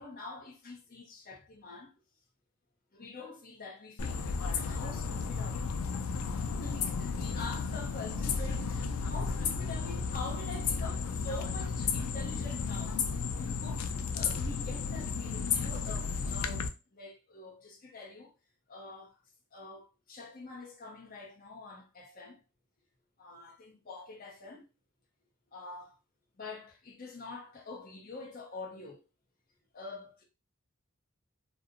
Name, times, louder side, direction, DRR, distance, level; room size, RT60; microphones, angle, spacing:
voice 1, 0.0-1.9 2.9-5.7 6.3-13.0 13.3-18.3 18.7-19.2 19.5-22.4 23.2-24.7 25.5-26.0 26.4-29.0 29.7-30.2, left 3 dB, 40° left, 0.6 m, -46 dB
sound 1, 4.0-16.7, left 5 dB, 90° left, 0.4 m, -33 dB
2.6 x 2.0 x 2.5 m
head